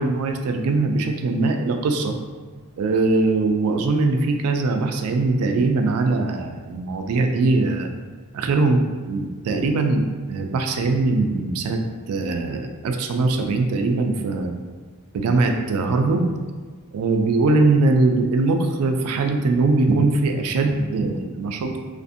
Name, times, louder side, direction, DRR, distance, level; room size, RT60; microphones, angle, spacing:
voice 1, 0.0-2.2 2.8-7.9 8.3-8.8 9.1-11.8 12.1-14.5 15.1-16.3 16.9-21.8, right 3 dB, 85° right, 4 dB, 0.3 m, -21 dB
2.5 x 2.4 x 2.5 m, 1.4 s
head